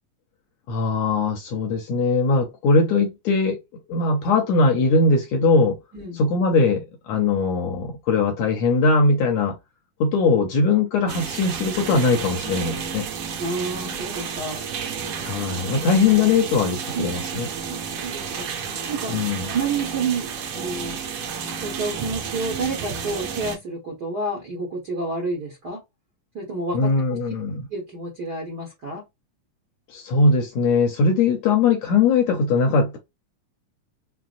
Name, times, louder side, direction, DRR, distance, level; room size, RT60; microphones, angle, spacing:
voice 1, 0.7-3.6 3.9-5.8 6.2-9.6 10.0-13.1 15.2-17.5 19.1-19.5 26.7-27.7 29.9-33.0, left 3 dB, 75° left, 1.7 m, -20 dB
sound 1, 11.1-23.6, right 6 dB, 75° right, 1.3 m, -31 dB
voice 2, 13.4-14.6 15.7-15.8 16.9-17.2 17.7-18.5 18.9-21.0 21.6-25.8 26.3-26.9 27.7-29.0, right 3 dB, 60° right, 1.0 m, -29 dB
5.7 x 2.0 x 2.4 m
omnidirectional pair, 3.7 m